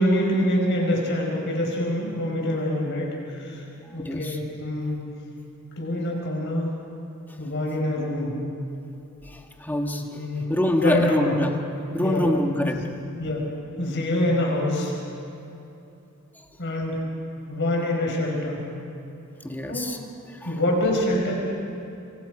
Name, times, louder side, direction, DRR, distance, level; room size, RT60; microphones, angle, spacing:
voice 1, 0.0-3.6 3.9-5.0 5.8-6.7 7.4-8.3 10.0-10.5 10.8-11.4 12.0-12.3 13.2-13.5 13.8-15.0 16.6-17.0 17.5-18.7 19.7-19.9 20.4-21.4, left 1 dB, 55° left, -1 dB, 5.4 m, -25 dB
voice 2, 3.9-4.4 9.2-10.2 10.5-11.5 11.9-12.8 19.4-20.0 20.4-20.6, left 1 dB, 10° left, 2 dB, 1.6 m, -25 dB
25.5 x 25.0 x 5.0 m, 2.8 s
head